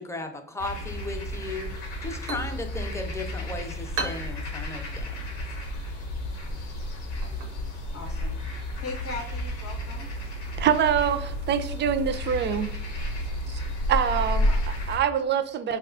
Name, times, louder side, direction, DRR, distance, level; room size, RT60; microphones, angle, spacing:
voice 1, 0.0-5.1, left 2 dB, 10° left, 5 dB, 0.6 m, -36 dB
sound 1, 0.6-15.0, left 1 dB, 90° left, 0.9 m, -31 dB
sound 2, 1.9-9.4, right 3 dB, 90° right, 0.6 m, -41 dB
voice 2, 7.9-8.4 8.8-10.1 14.1-14.7, left 3 dB, 50° left, 1 dB, 0.6 m, -39 dB
voice 3, 10.6-12.7 13.5-13.6 13.9-14.5 14.9-15.8, right 8 dB, 35° right, 12 dB, 0.4 m, -25 dB
4.4 x 2.3 x 2.4 m, 0.75 s
hypercardioid pair, 60°, 31 cm